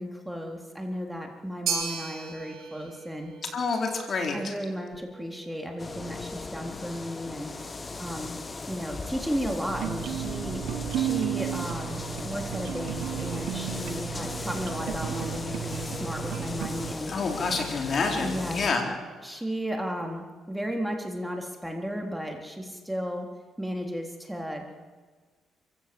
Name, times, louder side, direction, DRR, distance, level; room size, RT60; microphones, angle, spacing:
voice 1, 0.0-3.4 4.3-8.4 8.7-17.1 18.2-18.9 19.2-23.3 23.6-24.7, equal, 5° right, 2 dB, 3.8 m, -34 dB
sound 1, 1.7-10.0, right 6 dB, 75° right, 6.1 m, -39 dB
voice 2, 3.5-4.5 17.1-18.8, left 4 dB, 50° left, 3 dB, 4.2 m, -28 dB
sound 2, 5.8-18.7, left 3 dB, 30° left, 1.4 m, -37 dB
sound 3, 9.7-16.9, right 12 dB, 90° right, 0.7 m, -34 dB
28.0 x 16.0 x 7.9 m, 1.4 s
cardioid pair, 90°, 0 cm